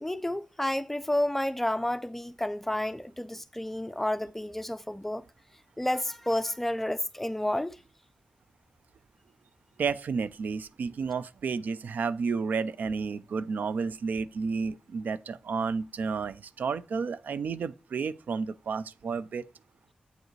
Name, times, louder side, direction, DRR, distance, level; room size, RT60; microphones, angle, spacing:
voice 1, 0.0-5.2 5.8-7.8, left 1 dB, 10° left, 0.3 m, -30 dB
voice 2, 9.8-19.5, right 5 dB, 80° right, 0.3 m, -31 dB
7.8 x 4.8 x 3.1 m
wide cardioid pair, 125°, 3 cm